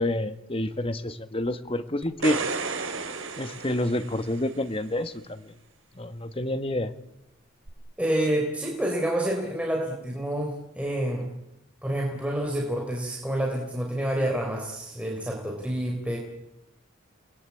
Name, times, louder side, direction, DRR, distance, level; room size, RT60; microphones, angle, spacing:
voice 1, 0.0-2.4 3.4-5.5 6.0-6.9, left 1 dB, 25° left, 11 dB, 1.4 m, -28 dB
sound 1, 2.0-4.6 7.7-7.8, right 4 dB, 75° right, 3.7 m, -33 dB
voice 2, 8.0-11.3 11.8-16.2, right 1 dB, 5° right, 0 dB, 4.1 m, -28 dB
29.5 x 21.0 x 8.6 m, 0.87 s
head